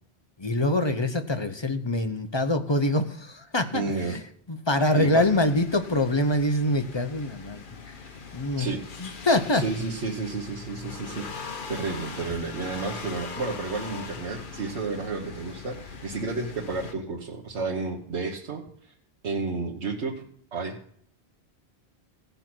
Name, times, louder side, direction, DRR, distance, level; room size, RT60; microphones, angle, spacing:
voice 1, 0.4-4.2 4.5-8.0 8.3-8.7 9.0-9.7, left 1 dB, 30° left, 8 dB, 0.7 m, -25 dB
voice 2, 3.7-4.1 5.0-5.2 8.6-8.8 9.5-18.6 19.2-20.2 20.5-20.7, right 3 dB, 85° right, -2 dB, 1.5 m, -31 dB
sound 1, 5.2-16.9, left 4 dB, 50° left, 1.2 m, -41 dB
16.5 x 6.8 x 6.1 m, 0.63 s
omnidirectional pair, 1.1 m